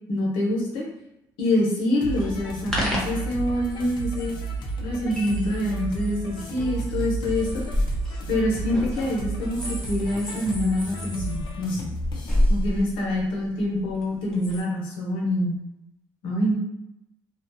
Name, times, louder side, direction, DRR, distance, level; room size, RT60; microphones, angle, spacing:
voice 1, 0.1-0.8 1.4-4.3 4.8-7.6 8.3-11.9 12.5-15.5 16.2-16.5, left 1 dB, 85° left, -2 dB, 0.9 m, -25 dB
sound 1, 2.0-12.6, right 3 dB, 60° left, 0.5 m, -33 dB
sound 2, 2.2-14.6, equal, 5° left, 0.8 m, -31 dB
2.4 x 2.3 x 2.6 m, 0.88 s
cardioid pair, 95°, 9 cm